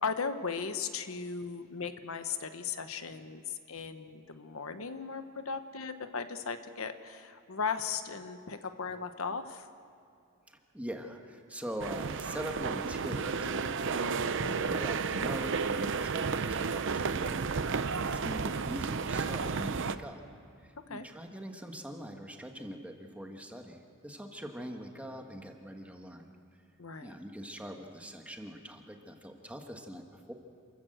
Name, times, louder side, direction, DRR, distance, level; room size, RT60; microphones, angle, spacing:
voice 1, 0.0-9.7 14.4-14.8 20.9-21.1 26.8-27.1, left 5 dB, 70° left, 9 dB, 1.0 m, -37 dB
voice 2, 10.5-20.2 20.6-26.3 27.0-30.3, equal, 5° right, 3 dB, 1.5 m, -43 dB
sound 1, 11.8-20.0, right 5 dB, 60° right, 0.7 m, -32 dB
28.0 x 14.5 x 7.8 m, 2.5 s
head